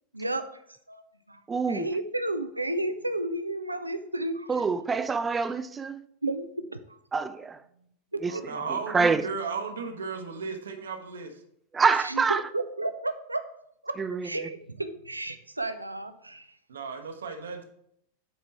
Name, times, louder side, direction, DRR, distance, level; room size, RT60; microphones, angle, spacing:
voice 1, 0.1-0.6 0.9-1.4 1.7-4.5 6.2-6.7 8.1-8.4 12.0-13.4 13.8-13.9 14.2-16.5, right 2 dB, 85° right, 0.5 m, -32 dB
voice 2, 1.5-1.9 4.5-6.1 7.1-7.6 8.2-8.3 8.7-9.3 11.7-12.5 14.0-14.3, right 5 dB, 15° right, 0.4 m, -26 dB
voice 3, 8.3-11.3 16.7-17.6, right 5 dB, 65° right, 1.1 m, -35 dB
9.0 x 4.4 x 4.3 m
figure-of-eight pair, 90°, 0 cm